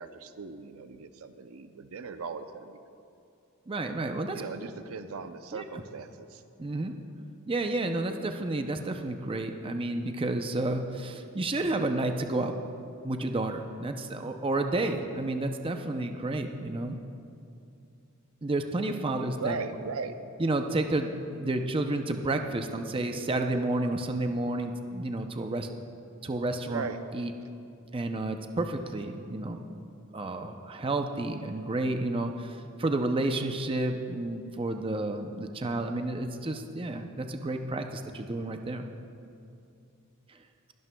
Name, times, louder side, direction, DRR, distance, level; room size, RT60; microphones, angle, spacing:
voice 1, 0.0-2.8 4.3-6.4 19.4-20.1 26.7-27.0, right 5 dB, 75° right, 9 dB, 0.5 m, -38 dB
voice 2, 3.7-4.4 5.5-5.6 6.6-7.0 7.5-12.5 13.0-17.0 18.4-19.6 20.4-25.7 26.2-26.9 27.1-27.3 27.9-29.6 30.1-38.8 40.3-40.4, right 2 dB, 25° right, 5 dB, 0.5 m, -31 dB
20.5 x 12.0 x 2.2 m, 2.6 s
head